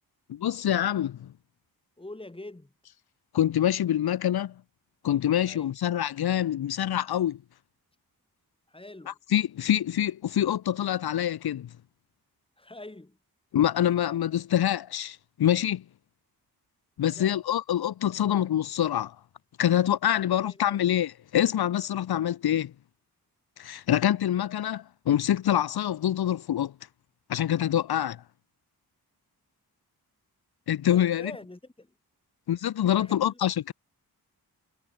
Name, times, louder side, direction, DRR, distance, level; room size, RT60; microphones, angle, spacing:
voice 1, 0.3-1.3 3.3-4.5 5.0-7.4 9.1-11.7 13.5-15.8 17.0-19.2 19.6-22.7 23.6-26.7 27.3-28.2 30.7-31.3 32.5-33.7, left 11 dB, 85° left, 1.0 m, -25 dB
voice 2, 2.0-2.7 5.5-5.7 8.7-9.2 12.6-13.2 17.1-17.4 20.1-20.8 30.9-31.9 33.0-33.6, left 2 dB, 15° left, 4.4 m, -45 dB
wide cardioid pair, 105°, 37 cm